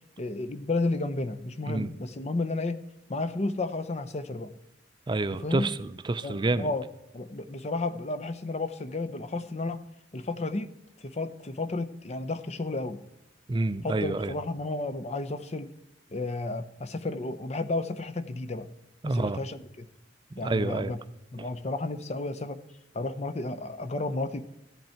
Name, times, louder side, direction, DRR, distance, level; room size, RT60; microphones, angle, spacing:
voice 1, 0.2-2.8 3.1-4.5 5.4-5.7 6.2-6.8 7.1-9.8 10.1-13.0 13.8-15.7 16.1-18.7 19.1-19.9 20.4-21.0 21.3-22.6 22.9-24.4, left 2 dB, 35° left, 11 dB, 0.6 m, -32 dB
voice 2, 5.1-6.7 13.5-14.3 19.0-19.4 20.4-20.9, right 2 dB, 25° right, 13 dB, 0.4 m, -28 dB
14.0 x 8.2 x 4.4 m, 0.89 s
head